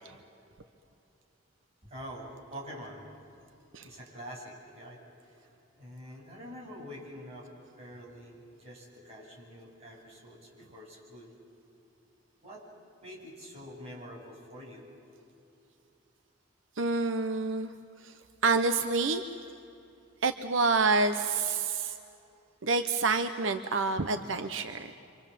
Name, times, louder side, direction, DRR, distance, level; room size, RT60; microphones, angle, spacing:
voice 1, 1.8-3.1 3.8-5.0 5.3-5.4 5.7-7.5 7.8-11.3 12.4-12.7 13.0-14.9, equal, 35° right, -4 dB, 7.8 m, -46 dB
voice 2, 16.8-17.7 18.0-19.2 20.2-22.0 22.6-24.9, right 4 dB, 80° right, 9 dB, 0.9 m, -28 dB
29.0 x 25.5 x 7.5 m, 2.8 s
head